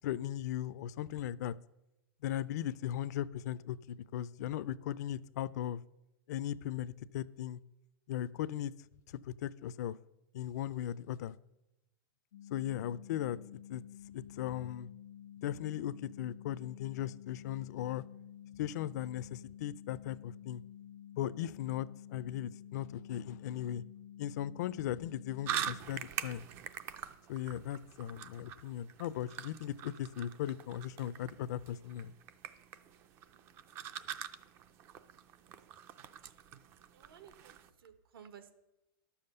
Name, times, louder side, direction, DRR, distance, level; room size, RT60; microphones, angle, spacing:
voice 1, 0.0-1.5 2.2-5.8 6.3-7.6 8.1-8.7 9.3-10.0 10.3-11.3 12.5-13.4 13.7-13.8 14.1-14.9 15.4-18.0 18.6-20.6 21.2-23.8 24.2-26.5 27.3-32.1, left 11 dB, 50° left, 17 dB, 0.4 m, -38 dB
sound 1, 12.3-25.8, left 10 dB, 85° left, 1.0 m, -51 dB
sound 2, 25.5-37.7, right 9 dB, 20° right, 0.3 m, -44 dB
voice 2, 36.9-38.5, right 8 dB, 85° right, 9 dB, 1.3 m, -55 dB
11.5 x 7.1 x 6.7 m, 0.93 s
supercardioid pair, 170°, 12 cm